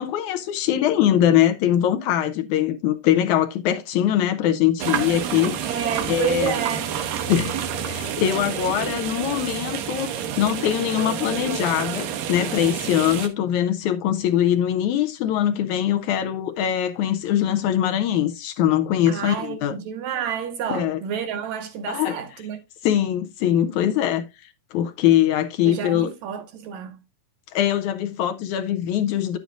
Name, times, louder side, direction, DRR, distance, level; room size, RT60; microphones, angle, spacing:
voice 1, 0.0-5.8 6.1-6.5 7.3-7.6 7.9-10.1 10.4-19.7 20.7-21.0 21.9-22.2 22.8-26.1 27.5-29.4, left 11 dB, 75° left, 1.9 m, -22 dB
sound 1, 4.8-13.3, right 9 dB, 90° right, 2.8 m, -29 dB
voice 2, 5.7-6.9 19.1-22.6 25.7-27.0, right 8 dB, 70° right, 1.9 m, -29 dB
10.5 x 8.2 x 2.5 m
omnidirectional pair, 3.8 m